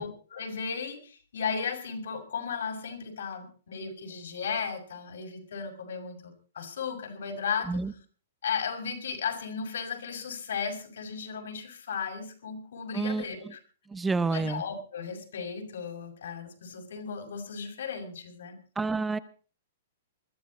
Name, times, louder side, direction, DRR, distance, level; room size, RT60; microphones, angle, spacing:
voice 1, 0.0-7.8 8.4-13.6 14.3-18.6, left 6 dB, 80° left, 2 dB, 6.1 m, -35 dB
voice 2, 12.9-13.5 13.9-14.6 18.8-19.2, right 3 dB, 5° right, 15 dB, 0.7 m, -29 dB
21.5 x 14.0 x 4.3 m, 0.40 s
hypercardioid pair, 175°, 0 cm